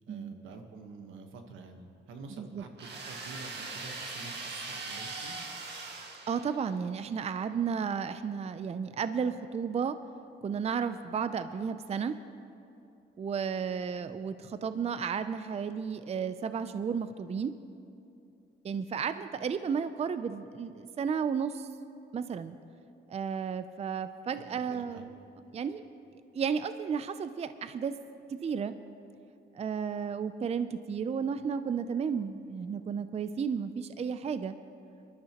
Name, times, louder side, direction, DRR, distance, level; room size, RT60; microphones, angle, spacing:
voice 1, 0.1-5.4 24.7-25.1, right 4 dB, 85° right, 5 dB, 1.3 m, -48 dB
sound 1, 2.8-6.9, right 3 dB, 60° right, 1.8 m, -41 dB
voice 2, 6.3-10.0 10.4-12.1 13.2-17.5 18.6-21.7 22.1-22.6 23.1-25.1 25.5-25.8 26.3-28.0 28.3-28.7 29.5-34.6, right 6 dB, 35° right, 12 dB, 0.5 m, -33 dB
22.5 x 12.5 x 3.0 m, 2.7 s
cardioid pair, 90°, 20 cm